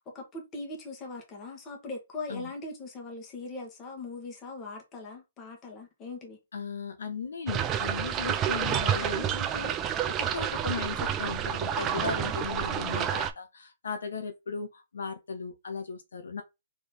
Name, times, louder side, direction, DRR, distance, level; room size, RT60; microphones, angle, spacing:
voice 1, 0.1-6.4, left 3 dB, 20° left, 1.3 m, -40 dB
voice 2, 6.5-16.4, left 5 dB, 80° left, 1.0 m, -37 dB
sound 1, 7.5-13.3, right 9 dB, 15° right, 0.4 m, -29 dB
4.3 x 3.1 x 3.5 m
hypercardioid pair, 160°, 0 cm